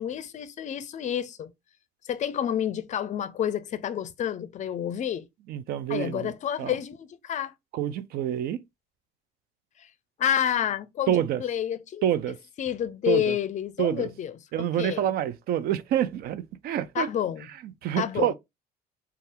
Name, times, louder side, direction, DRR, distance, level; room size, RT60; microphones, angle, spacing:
voice 1, 0.0-1.5 2.0-5.3 5.9-7.5 9.8-9.9 10.2-12.0 12.6-15.0 16.9-17.5 18.0-18.3, left 10 dB, 45° left, 0.4 m, -29 dB
voice 2, 5.5-6.8 7.7-8.6 11.1-11.4 12.0-12.4 13.1-13.4 13.8-14.1 14.5-17.1 17.6-18.3, right 10 dB, 65° right, 0.4 m, -27 dB
2.7 x 2.3 x 3.4 m
cardioid pair, 110°, 17 cm